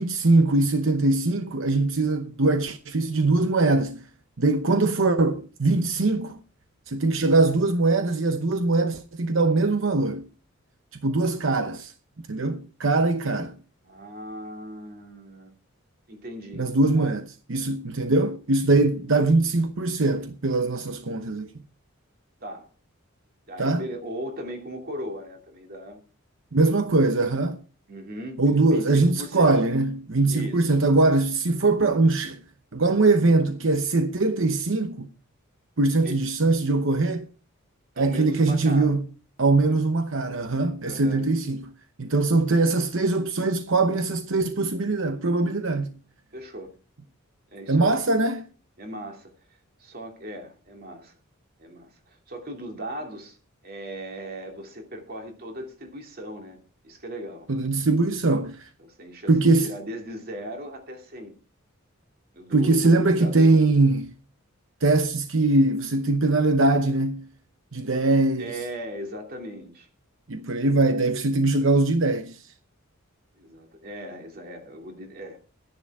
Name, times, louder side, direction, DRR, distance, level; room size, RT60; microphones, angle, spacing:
voice 1, 0.0-4.0 4.4-6.4 6.9-10.3 11.0-13.5 16.5-21.5 23.6-23.8 26.5-27.6 28.4-32.4 32.7-35.1 35.8-37.3 38.0-39.1 39.4-41.6 42.0-46.0 47.7-48.4 57.5-58.7 59.3-59.7 62.5-64.1 64.8-67.3 67.7-68.6 70.3-72.4, right 2 dB, 65° right, 0.9 m, -22 dB
voice 2, 13.8-15.5 16.1-16.6 16.9-17.2 22.4-22.7 23.5-26.0 27.9-28.4 28.7-29.6 30.3-30.7 36.0-36.2 37.9-39.0 39.7-39.8 40.8-41.3 42.5-42.7 46.3-46.7 47.5-48.0 48.8-51.1 51.6-53.4 53.6-56.6 56.8-57.5 58.8-61.3 62.3-63.6 68.4-69.9 73.3-75.4, equal, 45° right, 2.7 m, -38 dB
12.5 x 10.5 x 4.8 m
head